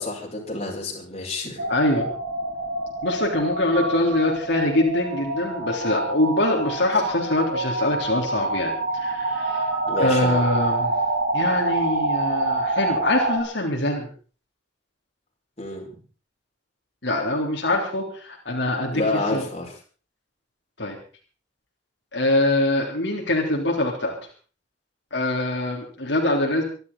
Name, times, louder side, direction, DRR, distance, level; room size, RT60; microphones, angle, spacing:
voice 1, 0.0-1.6 9.9-10.4 15.6-15.9 18.9-19.7, left 2 dB, 35° left, -1 dB, 5.7 m, -29 dB
sound 1, 1.6-13.4, right 2 dB, 70° right, 4.2 m, -26 dB
voice 2, 1.7-2.1 3.0-9.7 10.0-10.9 11.3-14.1 17.0-19.4 20.8-21.0 22.1-24.2 25.1-26.6, left 1 dB, 70° left, -1 dB, 3.6 m, -24 dB
25.0 x 12.0 x 4.1 m, 0.39 s
head